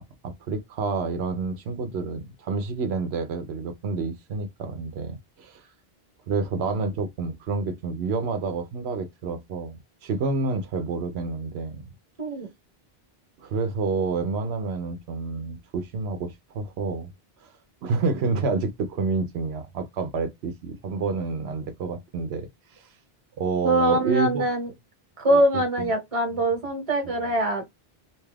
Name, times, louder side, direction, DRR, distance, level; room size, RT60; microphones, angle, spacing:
voice 1, 0.0-5.6 6.3-11.8 13.4-17.1 17.4-17.5 17.8-22.9 23.4-24.4 25.3-25.9 27.1-27.2, right 4 dB, 85° right, 0.9 m, -29 dB
voice 2, 23.6-24.7 25.2-27.7, right 1 dB, 35° right, 1.1 m, -23 dB
2.8 x 2.3 x 3.2 m
omnidirectional pair, 1.0 m